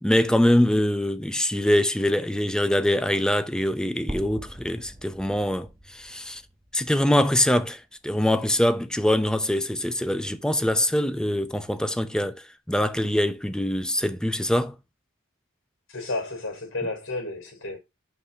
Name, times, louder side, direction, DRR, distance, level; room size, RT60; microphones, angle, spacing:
voice 1, 0.0-6.4 6.7-14.8, left 1 dB, 5° left, 0.6 m, -24 dB
sound 1, 4.1-8.0, equal, 15° right, 0.9 m, -42 dB
voice 2, 15.9-17.8, left 2 dB, 60° left, 4.2 m, -32 dB
5.7 x 5.7 x 4.3 m
head